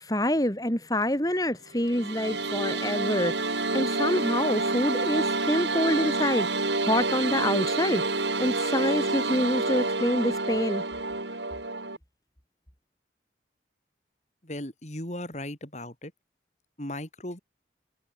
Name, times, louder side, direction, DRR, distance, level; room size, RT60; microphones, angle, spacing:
voice 1, 0.0-6.5 6.8-8.0 8.4-10.8, left 1 dB, 20° left, 4.0 m, -26 dB
sound 1, 1.8-12.0, right 3 dB, 80° right, 7.2 m, -28 dB
voice 2, 14.4-16.1 16.8-17.4, left 1 dB, 40° left, 5.2 m, -37 dB
head